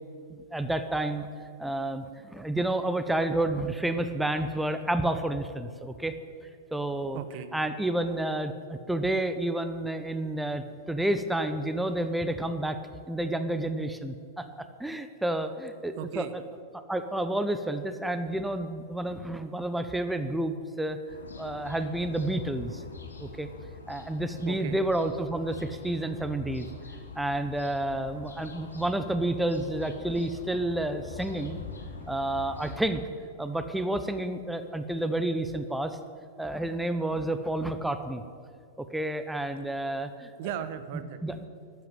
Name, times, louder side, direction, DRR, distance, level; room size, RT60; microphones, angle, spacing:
voice 1, 0.3-1.3 1.6-6.2 6.7-7.2 7.5-12.8 13.1-16.3 16.9-21.0 21.4-22.8 23.2-23.5 23.9-26.7 27.2-31.6 32.1-33.0 33.4-36.0 36.4-38.2 38.9-40.3 41.2-41.4, right 1 dB, 5° right, 9 dB, 0.8 m, -30 dB
voice 2, 7.1-7.5 16.0-16.3 24.4-24.8 40.4-41.4, right 10 dB, 50° right, 11 dB, 1.1 m, -37 dB
sound 1, 21.1-32.9, left 4 dB, 80° left, 2.7 m, -44 dB
13.0 x 9.3 x 9.2 m, 2.3 s
figure-of-eight pair, 100°, 0 cm